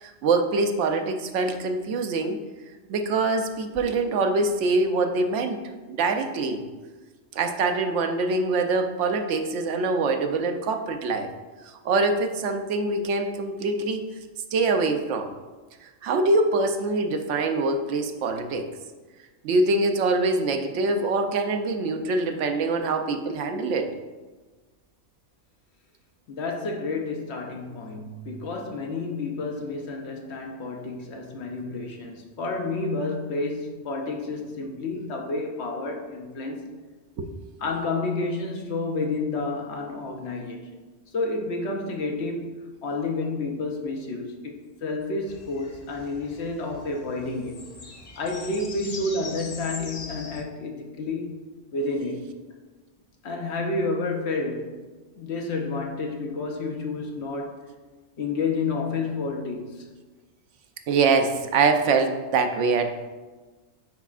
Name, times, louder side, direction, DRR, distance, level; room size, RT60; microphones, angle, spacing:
voice 1, 0.0-2.4 2.9-5.6 5.9-6.6 7.3-11.3 11.6-14.1 14.5-15.3 16.0-18.7 19.4-23.9 37.2-37.3 60.9-63.0, right 3 dB, 90° right, 6 dB, 0.9 m, -24 dB
voice 2, 26.3-36.7 37.6-40.7 41.1-44.5 44.8-47.6 48.2-51.3 51.7-52.3 53.2-54.8 55.2-57.6 58.2-59.8, left 3 dB, 70° left, 2 dB, 1.0 m, -30 dB
Birds in park near forest, 45.3-50.4, left 3 dB, 45° left, 0.6 m, -42 dB
9.6 x 4.1 x 2.4 m, 1.3 s
omnidirectional pair, 1.2 m